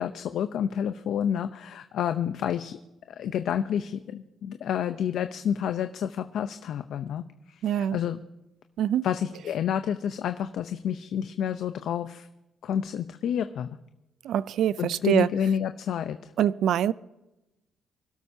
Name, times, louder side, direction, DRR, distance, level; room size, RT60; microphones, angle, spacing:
voice 1, 0.0-2.8 3.1-8.2 9.0-12.3 12.6-13.7 14.8-16.2, left 9 dB, 75° left, 0.6 m, -29 dB
voice 2, 7.6-8.0 8.8-9.1 14.2-15.3 16.4-16.9, right 10 dB, 75° right, 0.4 m, -24 dB
25.5 x 12.5 x 2.8 m
cardioid pair, 90°, 0 cm